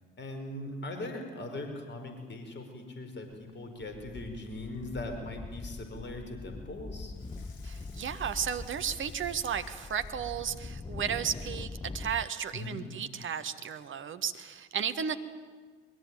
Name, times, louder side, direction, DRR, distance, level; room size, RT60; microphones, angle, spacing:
voice 1, 0.2-7.1 12.5-12.8, left 2 dB, 40° left, 5 dB, 5.3 m, -40 dB
sound 1, 3.3-3.5 3.8-12.3, left 3 dB, 15° left, 0.7 m, -43 dB
Water tap faucet / Sink (filling or washing), 4.2-4.8 7.1-11.1 11.7-11.8, left 6 dB, 65° left, 2.2 m, -58 dB
voice 2, 7.6-15.2, right 8 dB, 40° right, 9 dB, 1.6 m, -34 dB
22.5 x 22.0 x 9.2 m, 1.5 s
figure-of-eight pair, 50°, 29 cm